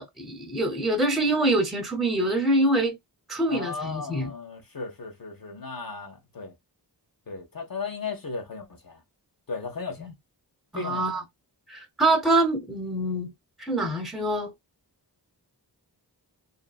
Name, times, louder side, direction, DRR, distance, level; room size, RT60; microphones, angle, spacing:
voice 1, 0.0-3.0 3.3-4.3 10.0-10.1 10.7-11.2 11.7-13.3 13.6-14.5, right 1 dB, ahead, 0.7 m, -25 dB
voice 2, 3.5-6.5 7.3-9.0 9.5-10.1 10.7-11.2, left 4 dB, 55° left, 0.9 m, -36 dB
2.7 x 2.6 x 2.3 m
wide cardioid pair, 55°, 42 cm